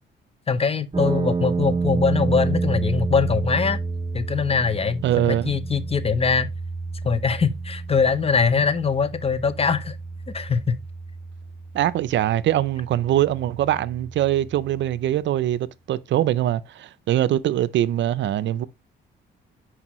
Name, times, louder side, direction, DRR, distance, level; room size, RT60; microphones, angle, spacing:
voice 1, 0.5-3.8 4.1-6.5 7.0-10.0 10.3-10.8, left 5 dB, 30° left, 0.7 m, -22 dB
sound 1, 0.9-15.0, right 4 dB, 25° right, 0.7 m, -30 dB
voice 2, 5.0-5.5 11.7-18.7, right 12 dB, 70° right, 0.5 m, -22 dB
9.7 x 4.8 x 3.0 m
cardioid pair, 90°, 20 cm